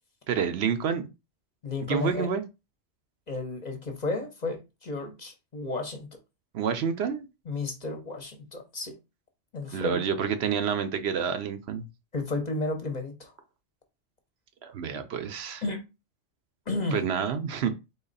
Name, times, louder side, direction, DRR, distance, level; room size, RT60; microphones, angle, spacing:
voice 1, 0.3-1.1 1.9-2.4 6.5-7.3 9.7-11.9 14.6-15.6 16.9-17.7, right 7 dB, 70° right, 0.8 m, -28 dB
voice 2, 1.6-2.3 3.3-6.1 7.5-9.0 9.5-10.0 12.1-13.3 15.6-15.8 16.7-17.0, left 3 dB, 40° left, 0.8 m, -32 dB
4.0 x 3.1 x 3.9 m
omnidirectional pair, 1.2 m